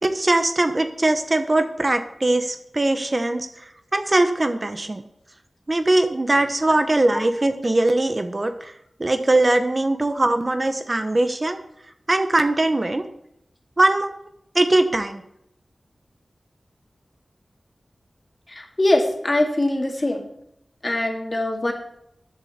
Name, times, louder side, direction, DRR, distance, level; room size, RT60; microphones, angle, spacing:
voice 1, 0.0-3.5 3.9-5.0 5.7-8.7 9.0-11.6 12.1-13.0 13.8-14.1 14.5-15.2, right 2 dB, 40° right, 8 dB, 1.0 m, -21 dB
voice 2, 18.5-20.3 20.8-21.7, left 1 dB, 35° left, 3 dB, 2.3 m, -22 dB
13.5 x 8.4 x 4.3 m, 0.77 s
wide cardioid pair, 60°, 0 cm